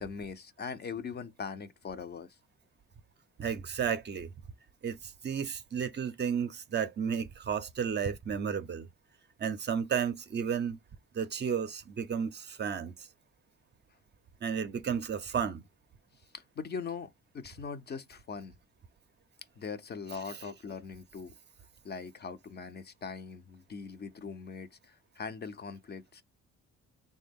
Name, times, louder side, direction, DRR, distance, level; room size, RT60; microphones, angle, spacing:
voice 1, 0.0-2.3 16.3-18.6 19.6-21.3 21.8-26.2, left 5 dB, 35° left, 0.4 m, -41 dB
voice 2, 3.4-4.3 4.8-8.9 9.4-10.8 11.1-12.9 14.4-15.6, right 7 dB, 35° right, 0.4 m, -33 dB
3.3 x 2.2 x 3.5 m
cardioid pair, 90°, 30 cm